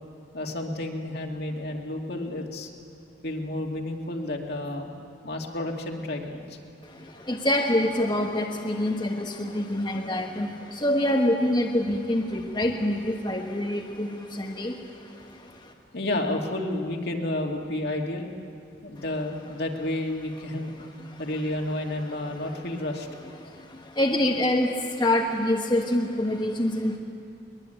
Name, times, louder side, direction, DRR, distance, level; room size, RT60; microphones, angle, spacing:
voice 1, 0.3-2.7 3.2-4.9 5.2-6.6 9.9-10.1 15.9-18.3 18.8-20.7 21.2-23.1, left 1 dB, 60° left, 1 dB, 2.4 m, -31 dB
voice 2, 7.3-10.5 10.8-14.7 24.0-27.0, left 1 dB, 25° left, -1 dB, 1.3 m, -25 dB
23.0 x 21.0 x 9.0 m, 2.7 s
head